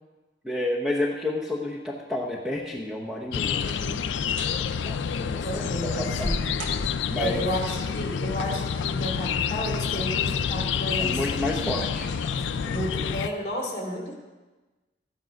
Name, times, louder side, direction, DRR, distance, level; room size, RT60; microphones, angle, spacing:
voice 1, 0.4-6.3 7.1-7.4 11.0-12.1 12.4-12.8, left 2 dB, 5° right, -2 dB, 0.9 m, -31 dB
sound 1, 2.8-3.0 3.5-4.0 4.3-4.6 5.2-7.4 8.6-9.1 9.6-9.7 10.4-10.6 11.0-11.1, equal, 80° right, 1.9 m, -37 dB
sound 2, 3.3-13.3, left 7 dB, 80° left, 0.4 m, -28 dB
voice 2, 5.4-6.5 7.1-11.2 12.7-14.1, equal, 35° left, -1 dB, 2.5 m, -32 dB
12.5 x 9.0 x 5.2 m, 1.2 s
head